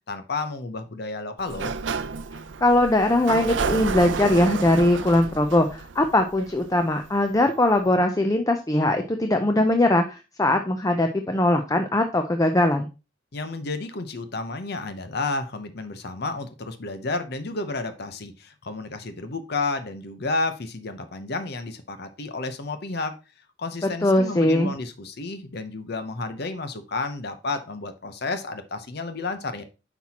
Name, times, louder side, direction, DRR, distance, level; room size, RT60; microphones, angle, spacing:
voice 1, 0.1-1.7 13.3-23.1 23.6-29.6, left 3 dB, 60° left, 9 dB, 0.8 m, -31 dB
Sliding door, 1.4-7.1, right 5 dB, 85° right, 0.6 m, -31 dB
voice 2, 2.6-12.9 24.0-24.7, left 1 dB, 20° left, 6 dB, 0.6 m, -21 dB
9.8 x 6.0 x 2.9 m, 0.30 s
head